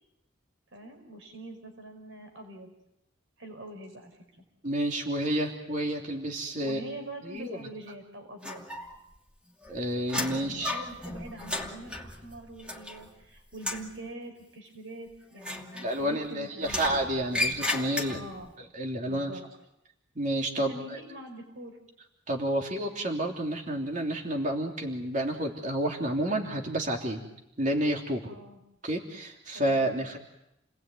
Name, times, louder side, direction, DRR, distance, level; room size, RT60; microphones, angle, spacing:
voice 1, 0.7-2.7 3.4-4.2 6.6-8.6 10.4-16.9 18.1-18.5 19.0-19.4 20.6-21.8 28.2-28.6 29.5-29.9, right 1 dB, 85° right, 5 dB, 5.2 m, -44 dB
voice 2, 4.6-6.8 7.2-7.7 9.7-10.7 15.8-18.2 18.6-19.3 20.1-21.0 22.3-27.2 27.6-28.3 28.8-30.2, right 1 dB, 40° right, 1 dB, 3.2 m, -30 dB
sound 1, 8.4-9.2 9.5-13.2 13.5-13.9 15.4-16.3 16.6-18.4, left 2 dB, 5° right, 2.7 m, -35 dB
30.0 x 20.0 x 9.3 m, 0.84 s
head